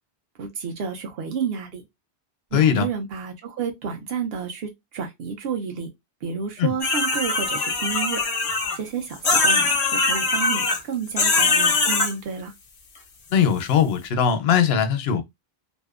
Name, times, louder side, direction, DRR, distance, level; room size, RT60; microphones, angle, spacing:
voice 1, 0.4-1.8 2.5-5.9 6.2-8.2 8.8-9.8 10.0-12.5, right 6 dB, 75° right, 0.9 m, -30 dB
voice 2, 2.5-2.9 6.6-6.7 13.3-15.2, left 8 dB, 75° left, 0.8 m, -20 dB
sound 1, 6.8-8.8 9.2-10.8 11.2-12.1, left 3 dB, 50° left, 0.5 m, -21 dB
2.6 x 2.0 x 2.3 m
omnidirectional pair, 1.1 m